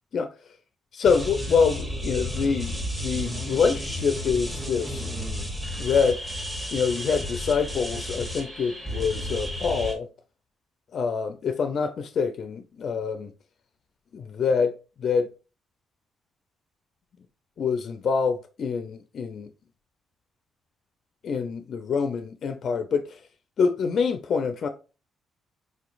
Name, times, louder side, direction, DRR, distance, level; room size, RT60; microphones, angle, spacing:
voice 1, 0.9-5.0 5.8-6.2 6.7-10.1 10.9-13.3 14.1-15.3 17.6-19.5 21.2-23.2 23.6-24.7, left 5 dB, 55° left, 0.4 m, -26 dB
sound 1, 1.0-9.9, equal, 10° right, 1.2 m, -32 dB
4.3 x 2.9 x 2.4 m
cardioid pair, 90°, 0 cm